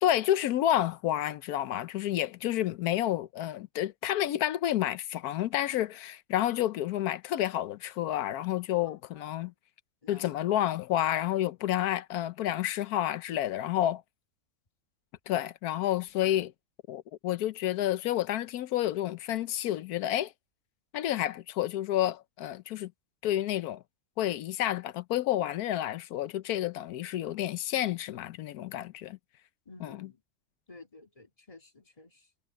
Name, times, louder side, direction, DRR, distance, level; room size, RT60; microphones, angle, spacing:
voice 1, 0.0-9.5 10.1-14.0 15.3-16.5 16.9-20.3 20.9-22.9 23.2-23.8 24.2-29.2 29.8-30.0, left 12 dB, 85° left, 1.2 m, -30 dB
voice 2, 8.8-9.5 10.0-10.3 29.7-30.2 30.7-32.3, left 3 dB, 25° left, 2.3 m, -53 dB
omnidirectional pair, 1.6 m